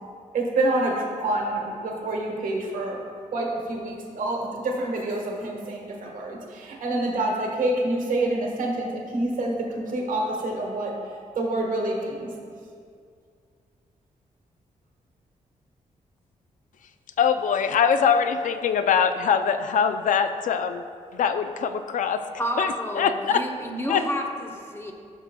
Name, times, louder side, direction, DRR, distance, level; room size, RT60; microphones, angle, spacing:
voice 1, 0.3-3.0 3.3-10.9 11.3-12.3, right 2 dB, 75° right, 0 dB, 1.3 m, -27 dB
voice 2, 17.2-20.8 21.1-22.2 22.6-23.4 23.9-24.0, left 7 dB, 70° left, 9 dB, 0.4 m, -23 dB
voice 3, 22.4-24.9, equal, 15° left, 2 dB, 0.8 m, -30 dB
12.5 x 6.2 x 2.2 m, 2.3 s
cardioid pair, 110°, 14 cm